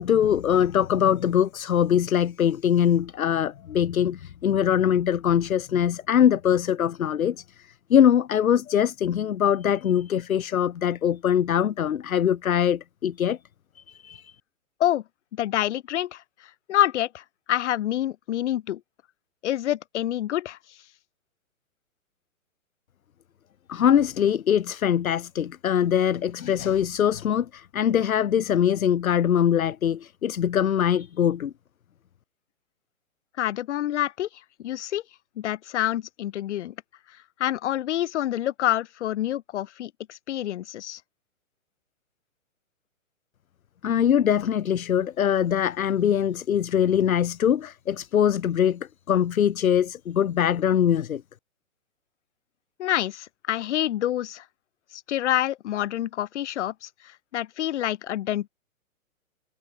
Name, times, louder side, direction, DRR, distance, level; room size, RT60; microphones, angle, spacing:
voice 1, 0.0-7.4 7.9-13.4 13.7-14.3 23.7-31.5 43.8-51.2, left 9 dB, 70° left, 1.4 m, -22 dB
voice 2, 15.3-16.2 16.7-18.8 19.4-20.6 33.4-34.3 34.6-35.0 35.4-36.7 37.4-41.0 52.8-54.4 54.9-56.9 57.3-58.5, left 12 dB, 55° left, 5.3 m, -27 dB
hypercardioid pair, 130°, 43 cm